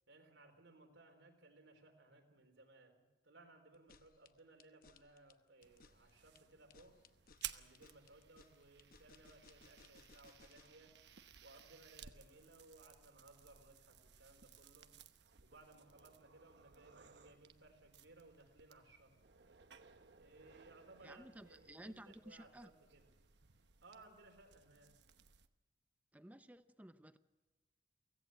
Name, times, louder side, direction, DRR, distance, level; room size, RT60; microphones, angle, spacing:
voice 1, 0.1-7.0 7.5-11.0 11.4-14.9 15.4-19.2 20.2-23.1 23.8-24.9, right 2 dB, 90° right, 4.1 m, -63 dB
sound 1, 3.7-10.8, left 4 dB, 50° left, 0.9 m, -65 dB
sound 2, 5.6-25.5, right 10 dB, 70° right, 1.0 m, -58 dB
voice 2, 21.0-22.7 26.1-27.2, right 1 dB, 10° right, 0.7 m, -55 dB
24.0 x 17.0 x 7.9 m
head